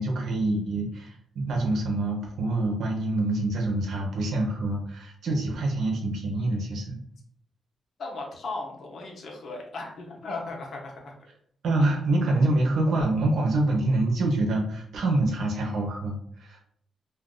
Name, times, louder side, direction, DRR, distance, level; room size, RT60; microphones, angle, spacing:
voice 1, 0.0-7.0 11.6-16.6, right 2 dB, 70° right, 1 dB, 0.8 m, -26 dB
voice 2, 8.0-11.1, left 3 dB, 60° left, 0 dB, 0.8 m, -36 dB
2.5 x 2.5 x 3.7 m, 0.64 s
wide cardioid pair, 145°, 0 cm